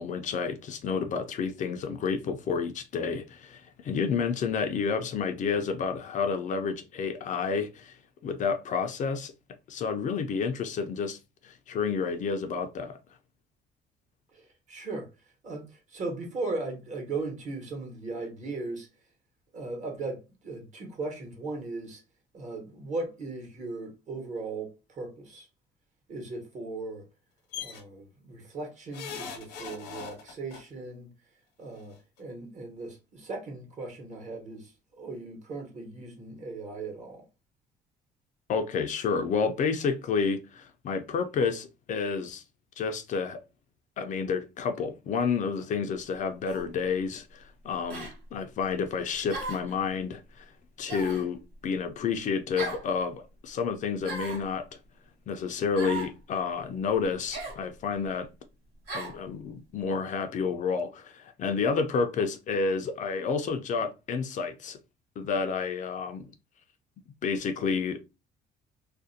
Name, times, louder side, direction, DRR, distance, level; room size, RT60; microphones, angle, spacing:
voice 1, 0.0-9.3 9.7-13.0 38.5-42.4 42.8-43.4 44.0-50.5 50.8-54.7 55.3-58.3 58.9-64.8 65.2-66.3 67.2-68.0, left 5 dB, 50° left, 0.4 m, -30 dB
voice 2, 14.3-15.1 15.4-18.9 19.5-22.0 22.3-25.5 26.1-27.0 27.6-31.1 31.6-37.2, right 3 dB, 45° right, 1.1 m, -38 dB
sound 1, 27.5-27.8 28.9-30.6 31.8-31.9 32.2-32.3, left 7 dB, 85° left, 0.7 m, -39 dB
sound 2, 46.5-46.7 47.9-48.1 49.3-49.7 50.9-51.3 52.6-52.9 54.0-54.5 55.8-56.1 57.3-57.6 58.9-59.2, right 3 dB, 80° right, 1.3 m, -36 dB
2.4 x 2.1 x 2.6 m
cardioid pair, 110°, 17 cm